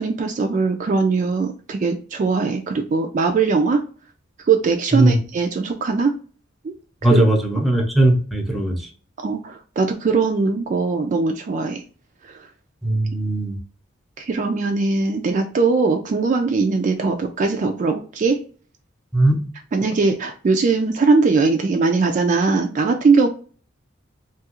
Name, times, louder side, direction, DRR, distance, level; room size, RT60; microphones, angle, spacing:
voice 1, 0.0-3.8 4.5-6.1 6.6-6.7 7.1-7.2 9.2-11.8 12.2-12.4 14.2-18.4 19.7-23.3, right 4 dB, 40° right, 0.3 m, -20 dB
voice 2, 7.0-8.9 12.8-13.6 19.1-19.4, right 1 dB, ahead, 0.6 m, -18 dB
2.7 x 2.4 x 2.9 m
head